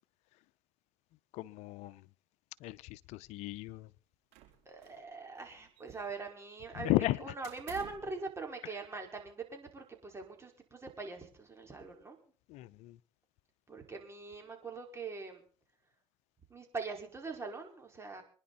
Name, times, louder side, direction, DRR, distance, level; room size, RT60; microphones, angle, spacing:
voice 1, 1.3-2.0 2.6-3.9 6.8-7.3 12.5-13.0, left 17 dB, 70° left, 0.8 m, -35 dB
sound 1, 4.3-5.1 5.4-6.3 7.4-8.2, right 12 dB, 75° right, 4.3 m, -53 dB
voice 2, 4.6-6.9 7.2-12.2 13.7-15.4 16.5-18.2, right 4 dB, 20° right, 5.0 m, -42 dB
25.0 x 10.5 x 4.3 m
supercardioid pair, 80°, 12 cm